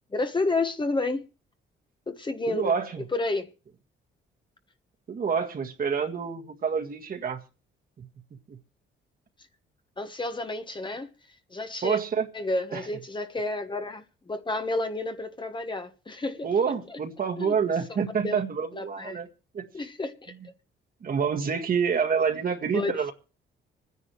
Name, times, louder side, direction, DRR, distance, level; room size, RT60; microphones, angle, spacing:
voice 1, 0.1-1.2 2.1-3.5 10.0-11.1 11.5-12.0 12.3-16.5 16.9-17.0 17.4-17.5 18.2-18.4 18.7-19.2 19.7-20.3 22.7-23.1, left 2 dB, 25° left, 1.3 m, -30 dB
voice 2, 2.5-3.0 5.1-7.4 8.0-8.1 8.5-8.6 11.8-12.3 12.7-12.8 16.4-19.3 19.5-19.7 21.0-23.1, right 6 dB, 45° right, 1.8 m, -27 dB
25.5 x 10.0 x 3.1 m
cardioid pair, 90°, 20 cm